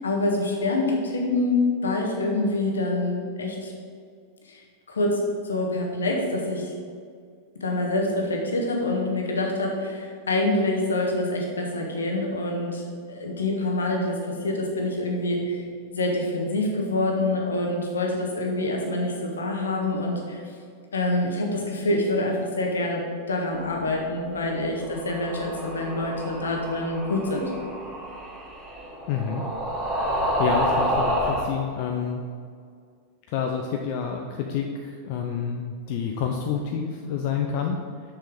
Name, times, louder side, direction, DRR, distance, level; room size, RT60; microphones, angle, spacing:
voice 1, 0.0-3.7 4.5-4.6 4.9-6.7 7.6-15.6 15.9-20.4 20.9-27.5, left 2 dB, 70° left, 1 dB, 1.4 m, -26 dB
sound 1, 24.8-31.5, equal, 20° right, 2.1 m, -29 dB
voice 2, 29.1-29.4 30.4-32.2 33.3-37.8, left 7 dB, 45° left, 2 dB, 0.6 m, -28 dB
6.4 x 6.2 x 5.2 m, 2.1 s
figure-of-eight pair, 90°, 0 cm